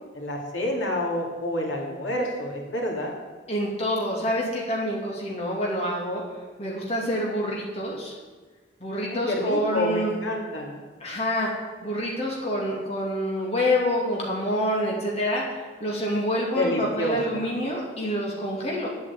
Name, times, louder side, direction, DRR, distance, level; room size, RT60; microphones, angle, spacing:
voice 1, 0.1-3.1 9.1-10.8 16.5-17.2, left 1 dB, 80° left, 0 dB, 3.0 m, -28 dB
voice 2, 3.5-6.2 6.6-8.2 8.8-10.1 11.0-11.5 11.8-18.9, equal, 30° left, -3 dB, 2.6 m, -27 dB
11.0 x 8.4 x 8.5 m, 1.4 s
head